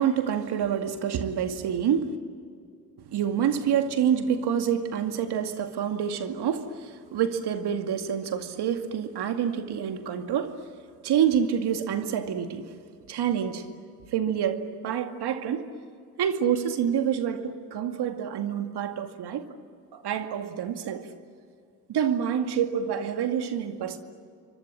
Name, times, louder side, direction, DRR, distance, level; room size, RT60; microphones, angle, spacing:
voice 1, 0.0-2.2 3.0-10.6 11.0-12.7 13.1-13.7 14.1-15.7 16.2-19.4 19.9-21.1 21.9-24.0, right 8 dB, 50° right, 2.3 m, -27 dB
30.0 x 24.5 x 7.6 m
hypercardioid pair, 60°, 50 cm